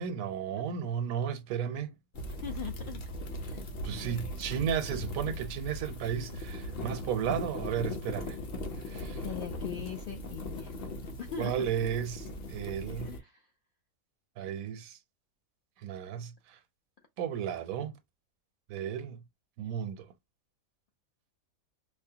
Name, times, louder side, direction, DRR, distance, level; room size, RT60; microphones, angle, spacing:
voice 1, 0.0-1.9 3.8-8.4 8.9-9.2 11.4-13.1 14.4-15.0 15.8-16.3 17.2-17.9 18.7-19.2 19.6-20.1, right 8 dB, 80° right, 1.0 m, -34 dB
sound 1, 2.1-13.2, left 1 dB, 50° left, 0.9 m, -39 dB
voice 2, 2.4-3.0 3.4-3.6 4.0-4.4 9.1-10.7 11.0-11.7 13.0-13.5, left 7 dB, 65° left, 0.5 m, -41 dB
4.7 x 2.1 x 2.8 m
omnidirectional pair, 1.5 m